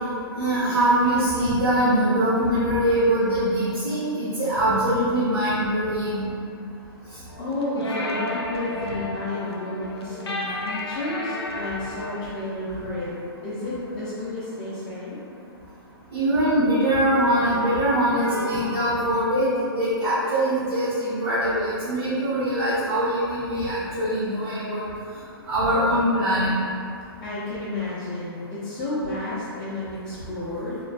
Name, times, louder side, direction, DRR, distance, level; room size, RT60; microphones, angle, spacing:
voice 1, 0.4-6.2 16.1-24.8 25.5-26.5, right 1 dB, 90° right, -12 dB, 0.9 m, -22 dB
sound 1, 7.3-12.3, left 2 dB, 80° left, 0.4 m, -33 dB
voice 2, 7.4-13.1 13.4-15.2 27.2-30.8, left 2 dB, 25° left, -13 dB, 0.6 m, -31 dB
3.0 x 2.1 x 2.4 m, 2.4 s
hypercardioid pair, 130°, 13 cm